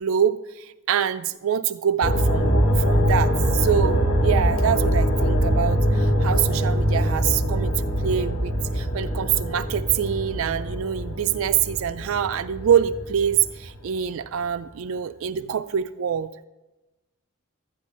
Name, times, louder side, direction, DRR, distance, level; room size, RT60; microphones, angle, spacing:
voice 1, 0.0-16.3, right 8 dB, 65° right, 12 dB, 0.3 m, -25 dB
sound 1, 2.0-13.7 14.0-14.1, equal, 70° left, 1.1 m, -23 dB
12.5 x 9.9 x 4.2 m, 1.0 s
head